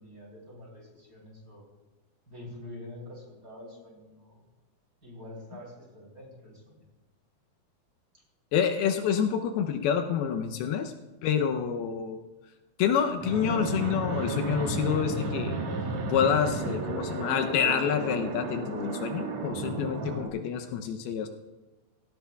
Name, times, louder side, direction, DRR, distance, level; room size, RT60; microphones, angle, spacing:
voice 1, 0.0-1.6 2.3-4.5 5.0-6.8 8.1-8.2, left 1 dB, 25° right, -3 dB, 3.5 m, -46 dB
voice 2, 8.5-10.9 11.2-12.2 12.8-15.5 16.1-21.3, left 8 dB, 80° left, 6 dB, 2.6 m, -28 dB
Fixed-wing aircraft airplane, 13.2-20.3, right 3 dB, 55° right, 2.3 m, -33 dB
19.5 x 16.5 x 2.3 m, 1.2 s
omnidirectional pair, 4.5 m